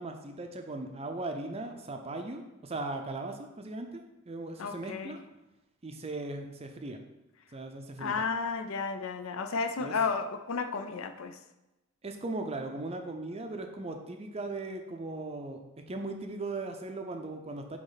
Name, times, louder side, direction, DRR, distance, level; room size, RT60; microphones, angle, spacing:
voice 1, 0.0-5.2 5.8-7.0 7.5-8.1 9.8-10.0 12.0-15.6 15.9-17.8, right 2 dB, 25° right, 5 dB, 0.5 m, -38 dB
voice 2, 4.6-5.2 8.0-11.4, left 5 dB, 60° left, 9 dB, 0.5 m, -32 dB
8.8 x 3.0 x 4.0 m, 0.99 s
head